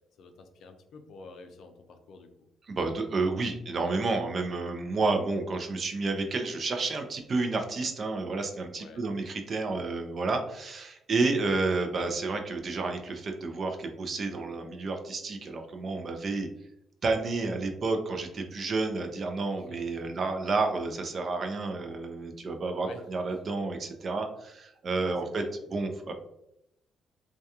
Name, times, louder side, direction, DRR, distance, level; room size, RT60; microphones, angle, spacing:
voice 1, 0.2-2.3 8.8-9.0 19.7-20.2 22.8-23.0 25.0-25.5, left 3 dB, 70° left, 6 dB, 0.4 m, -49 dB
voice 2, 2.7-16.5 17.0-25.4 25.7-26.1, right 3 dB, 45° right, 5 dB, 0.4 m, -30 dB
2.3 x 2.2 x 2.8 m, 0.81 s
cardioid pair, 90°, 0 cm